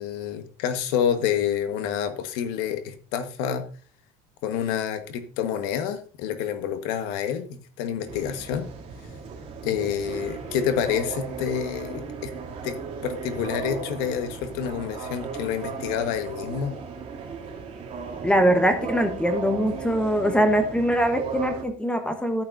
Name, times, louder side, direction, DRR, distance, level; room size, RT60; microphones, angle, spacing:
voice 1, 0.0-3.6 4.4-8.7 9.6-12.3 12.6-16.8, left 9 dB, 80° left, 9 dB, 1.3 m, -28 dB
sound 1, 8.1-21.6, right 5 dB, 35° right, 2.7 m, -36 dB
voice 2, 18.2-22.4, equal, 5° left, 8 dB, 1.0 m, -22 dB
13.5 x 8.9 x 2.6 m, 0.41 s
cardioid pair, 145°, 16 cm